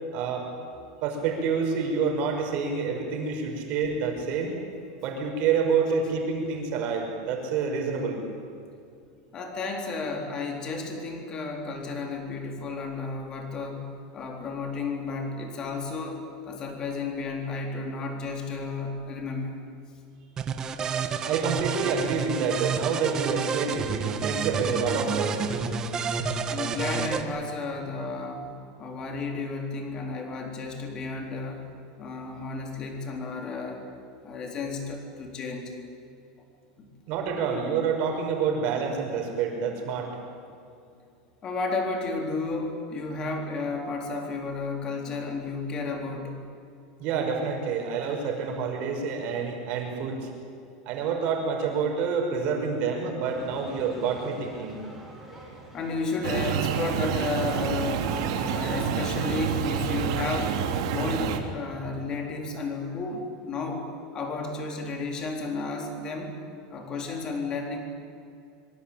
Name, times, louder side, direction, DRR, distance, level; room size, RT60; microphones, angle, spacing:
voice 1, 0.1-0.5 1.0-4.5 5.0-8.2 21.3-25.5 37.1-40.1 47.0-50.3 50.9-54.7, right 5 dB, 40° right, 2 dB, 5.5 m, -28 dB
voice 2, 9.3-19.6 26.5-31.7 32.0-33.8 34.2-35.7 36.8-36.9 41.4-46.4 50.6-50.8 55.2-55.4 55.7-63.9 64.1-66.4 66.7-67.8, left 3 dB, 25° left, 3 dB, 4.0 m, -32 dB
sound 1, 20.4-27.2, right 6 dB, 20° right, 1.5 m, -29 dB
sound 2, 53.2-59.1, right 1 dB, ahead, 7.5 m, -43 dB
sound 3, 56.2-61.4, right 7 dB, 70° right, 3.0 m, -28 dB
25.5 x 24.5 x 8.9 m, 2.5 s
supercardioid pair, 175°, 3 cm